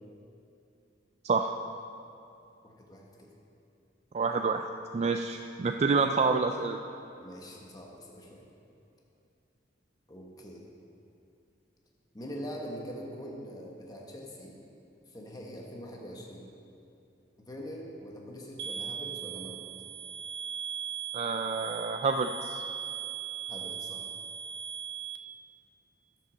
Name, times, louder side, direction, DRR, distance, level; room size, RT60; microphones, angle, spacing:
voice 1, 2.6-3.3 7.2-8.4 10.1-10.6 12.1-14.5 15.1-16.4 17.4-19.7 23.5-24.1, equal, 20° left, -2 dB, 1.2 m, -43 dB
voice 2, 4.1-4.7 4.9-6.8 21.1-22.6, right 4 dB, 35° right, 5 dB, 0.4 m, -28 dB
sound 1, 18.6-25.2, right 8 dB, 70° right, 0.8 m, -38 dB
12.0 x 7.8 x 6.3 m, 2.7 s
head